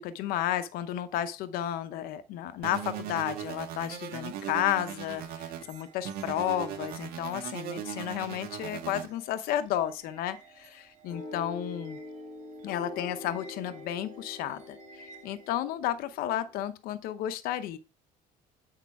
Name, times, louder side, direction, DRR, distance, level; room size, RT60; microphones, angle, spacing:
voice 1, 0.0-12.0 12.6-17.8, left 12 dB, 75° left, 0.8 m, -32 dB
sound 1, 2.6-5.6 6.0-9.1, right 9 dB, 80° right, 1.6 m, -38 dB
sound 2, 3.4-15.5, right 5 dB, 50° right, 2.0 m, -56 dB
sound 3, 11.1-16.6, left 2 dB, 40° left, 1.9 m, -45 dB
8.3 x 6.6 x 4.7 m
cardioid pair, 160°, 15 cm